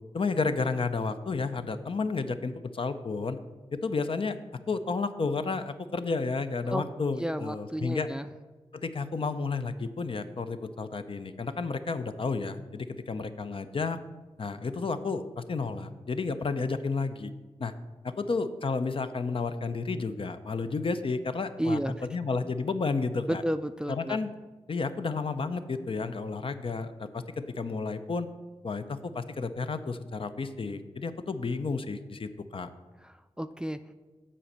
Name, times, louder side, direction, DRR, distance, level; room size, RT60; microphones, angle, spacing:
voice 1, 0.1-3.4 3.7-4.4 4.7-8.1 8.7-14.0 14.4-17.3 17.6-17.7 18.0-23.4 23.9-24.3 24.7-28.3 28.6-32.7, left 4 dB, 50° left, 10 dB, 0.5 m, -31 dB
voice 2, 7.2-8.3 21.6-22.1 23.3-24.2 33.0-33.8, equal, 5° right, 11 dB, 0.4 m, -32 dB
7.5 x 4.2 x 6.7 m, 1.3 s
cardioid pair, 45°, 12 cm